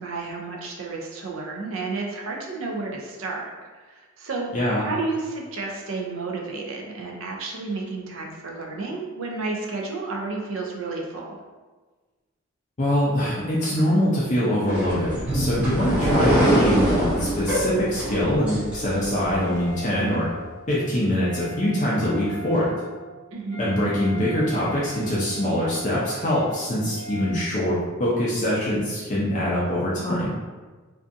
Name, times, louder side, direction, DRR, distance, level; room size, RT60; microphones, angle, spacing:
voice 1, 0.0-11.4 16.9-17.0 23.3-23.6, right 3 dB, 75° right, 0 dB, 0.5 m, -31 dB
voice 2, 4.5-4.9 12.8-20.3 20.7-22.7 23.6-30.3, equal, 35° left, -7 dB, 0.4 m, -23 dB
sound 1, 14.7-19.4, right 1 dB, 5° right, 0.6 m, -23 dB
Wind instrument woodwind instrument, 17.4-27.4, right 2 dB, 60° right, 0.9 m, -41 dB
2.6 x 2.3 x 2.5 m, 1.3 s
head